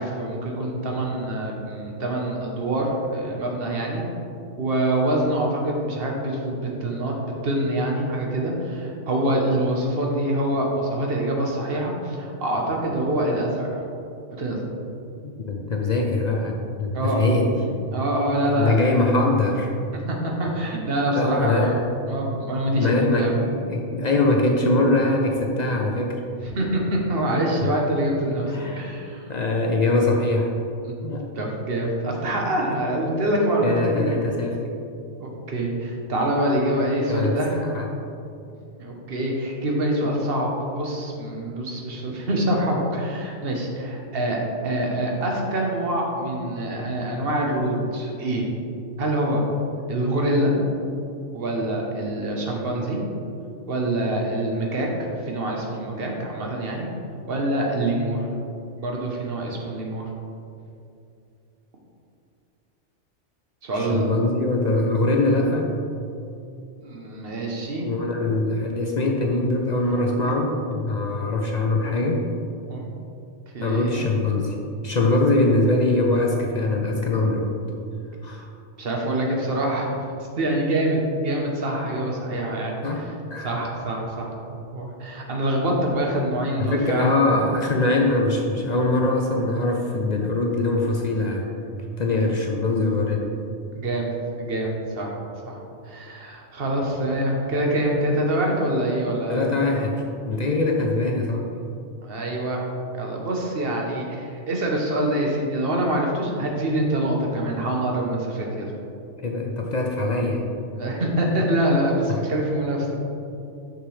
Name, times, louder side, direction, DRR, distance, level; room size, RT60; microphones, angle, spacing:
voice 1, 0.0-4.0 4.6-7.1 7.4-13.8 14.3-14.7 16.9-17.3 17.9-18.8 19.9-21.8 22.1-23.4 26.4-29.2 30.8-30.9 31.3-34.2 35.2-37.5 38.8-40.5 40.7-48.5 49.0-49.4 49.9-50.5 51.3-53.0 53.7-56.9 57.3-58.3 58.8-60.1 63.6-64.2 66.8-67.9 72.7-72.8 73.5-74.1 78.8-79.9 80.4-83.1 83.4-87.1 93.7-95.1 95.5-95.6 95.8-99.5 102.0-102.6 102.9-108.7 110.7-113.0, right 1 dB, 55° right, 0 dB, 1.2 m, -25 dB
voice 2, 15.2-17.6 18.4-19.7 21.2-21.8 22.8-26.2 27.6-27.7 28.5-28.9 29.3-30.5 31.0-31.3 33.6-34.6 37.1-38.0 63.7-65.7 67.8-72.2 73.6-74.6 74.8-77.6 78.2-78.5 82.8-83.0 83.3-83.6 86.6-91.5 92.0-93.3 99.3-101.5 109.2-110.4 112.1-112.2, left 2 dB, 50° left, 1 dB, 0.5 m, -23 dB
6.2 x 6.1 x 3.2 m, 2.6 s
omnidirectional pair, 1.2 m